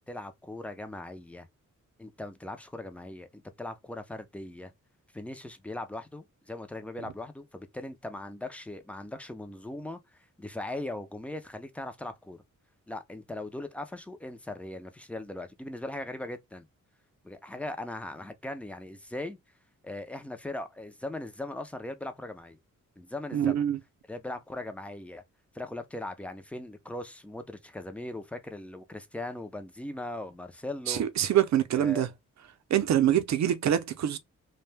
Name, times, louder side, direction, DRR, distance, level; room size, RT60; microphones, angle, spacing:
voice 1, 0.1-1.5 2.0-4.7 5.1-10.0 10.4-12.4 12.9-16.7 17.2-19.4 19.8-22.6 23.0-23.7 24.1-25.2 25.5-31.0 31.7-32.1, left 1 dB, 5° left, 0.4 m, -39 dB
voice 2, 23.3-23.8 30.9-32.1 32.7-34.2, right 10 dB, 65° right, 0.5 m, -25 dB
2.6 x 2.2 x 3.2 m
wide cardioid pair, 125°, 30 cm